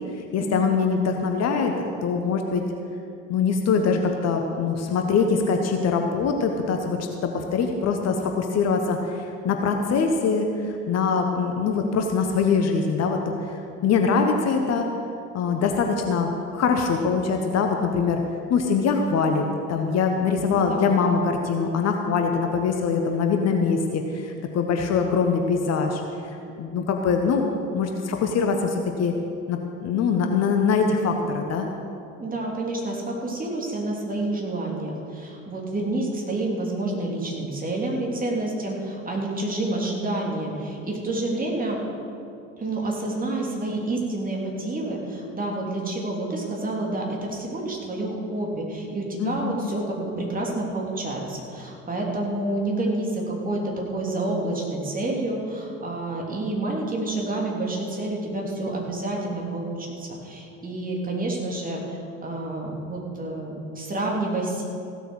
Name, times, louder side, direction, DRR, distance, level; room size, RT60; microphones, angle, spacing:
voice 1, 0.1-2.6 3.3-13.2 13.5-14.9 15.3-18.2 18.5-26.0 26.6-29.1 29.5-31.7 49.2-49.6, left 5 dB, 40° left, 4 dB, 1.3 m, -23 dB
voice 2, 32.2-41.8 42.6-64.6, right 2 dB, 20° right, -1 dB, 3.2 m, -29 dB
16.0 x 8.1 x 6.3 m, 2.6 s
figure-of-eight pair, 65°, 40 cm